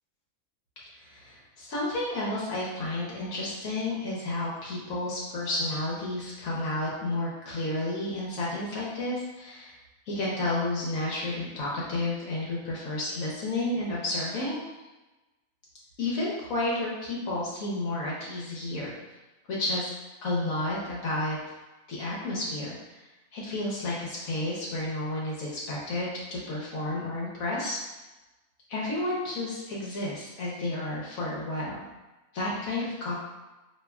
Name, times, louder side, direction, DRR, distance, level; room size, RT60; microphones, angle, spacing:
voice 1, 0.9-9.8 10.1-14.6 16.0-18.9 19.5-19.9 20.2-21.4 21.9-23.0 23.3-27.8 28.7-31.8 32.3-33.1, left 2 dB, 80° left, -5 dB, 1.3 m, -31 dB
5.3 x 2.7 x 2.3 m, 1.1 s
omnidirectional pair, 1.4 m